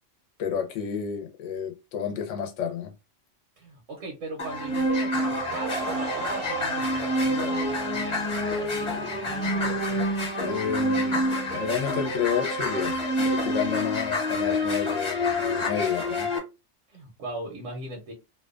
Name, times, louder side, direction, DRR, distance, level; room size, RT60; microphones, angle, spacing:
voice 1, 0.4-2.9 8.9-9.1 10.4-12.9 13.2-16.3, left 8 dB, 80° left, 1.0 m, -30 dB
voice 2, 3.6-10.1 16.9-18.1, right 2 dB, 85° right, 1.0 m, -39 dB
sound 1, 4.4-16.4, left 1 dB, 30° left, 0.9 m, -27 dB
Laughter / Crowd, 5.1-8.6, right 3 dB, 45° right, 0.5 m, -38 dB
2.6 x 2.2 x 2.4 m
omnidirectional pair, 1.3 m